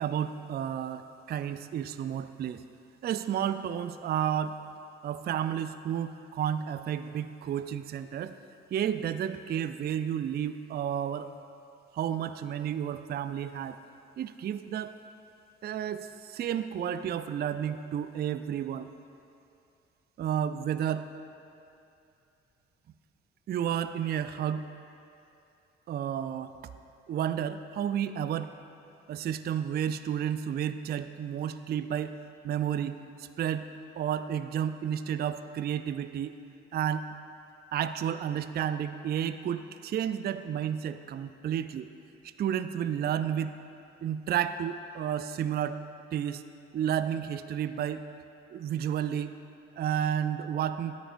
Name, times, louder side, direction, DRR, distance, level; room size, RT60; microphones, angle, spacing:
voice 1, 0.0-2.6 3.0-4.6 5.0-8.4 8.7-11.3 11.9-13.8 14.2-14.9 15.6-18.9 20.2-21.1 23.5-24.7 25.9-26.5 27.1-28.5 29.1-32.2 32.4-33.7 34.0-36.4 36.7-37.1 37.7-41.9 42.4-43.5 44.0-45.8 46.1-46.4 46.7-48.1 48.5-49.3 49.8-51.0, right 9 dB, 30° right, 11 dB, 0.4 m, -31 dB
12.5 x 9.8 x 2.5 m, 2.7 s
figure-of-eight pair, 40°, 31 cm